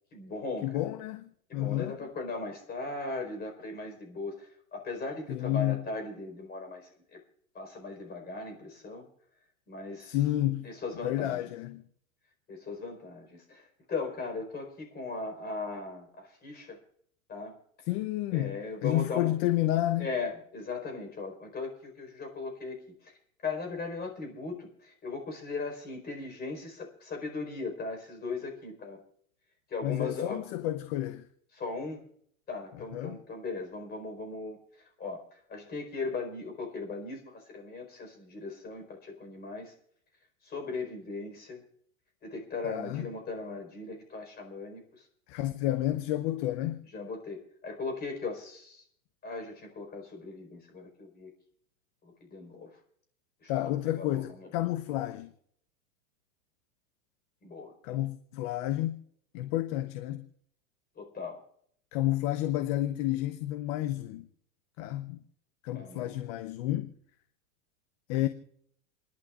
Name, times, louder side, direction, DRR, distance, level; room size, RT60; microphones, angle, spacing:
voice 1, 0.1-0.8 1.5-7.2 7.5-9.1 9.7-10.2 10.6-11.4 12.5-16.8 17.3-17.6 18.3-19.3 20.0-23.2 23.4-29.0 29.7-30.4 31.5-32.0 32.5-34.6 35.0-39.7 40.4-41.6 42.2-45.0 46.9-48.8 49.2-51.3 52.0-52.7 53.4-53.5 53.9-54.5 57.4-57.7 60.9-61.4 65.7-66.2, left 3 dB, 25° left, 4.7 m, -38 dB
voice 2, 0.6-2.0 5.3-5.8 10.1-10.7 11.0-11.8 17.9-20.1 29.8-31.2 32.9-33.2 42.6-43.0 45.3-46.8 53.5-55.3 57.8-59.0 59.3-60.3 61.9-64.3 64.8-65.2 65.6-66.9 68.1-68.3, left 14 dB, 50° left, 0.9 m, -30 dB
29.0 x 11.5 x 2.5 m
hypercardioid pair, 125°, 41 cm